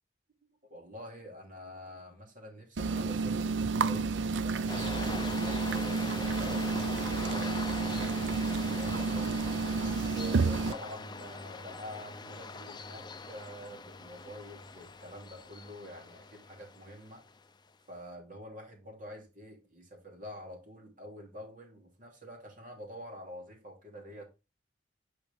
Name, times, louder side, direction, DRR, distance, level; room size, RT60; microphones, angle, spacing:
voice 1, 0.4-4.2 4.4-9.3 10.0-17.2 17.9-24.3, equal, 50° right, 2.8 m, -47 dB
sound 1, 2.8-10.7, right 4 dB, 85° right, 0.5 m, -30 dB
sound 2, 4.7-17.5, left 4 dB, 25° left, 0.5 m, -43 dB
8.7 x 4.9 x 3.5 m
head